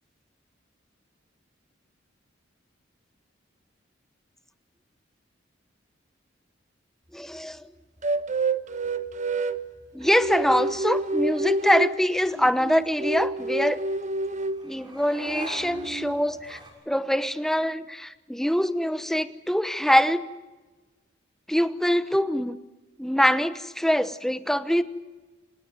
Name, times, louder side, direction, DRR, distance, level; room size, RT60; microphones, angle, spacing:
voice 1, 7.1-7.6 9.9-13.8 14.6-16.6 16.9-20.2 21.5-22.6 23.0-24.8, equal, ahead, 12 dB, 1.0 m, -24 dB
sound 1, 7.1-16.7, right 1 dB, 25° right, 6.7 m, -47 dB
sound 2, 8.0-9.6 10.0-12.0 12.3-14.6 15.1-16.1, right 2 dB, 40° right, 1.1 m, -28 dB
27.5 x 18.0 x 9.3 m, 1.2 s
head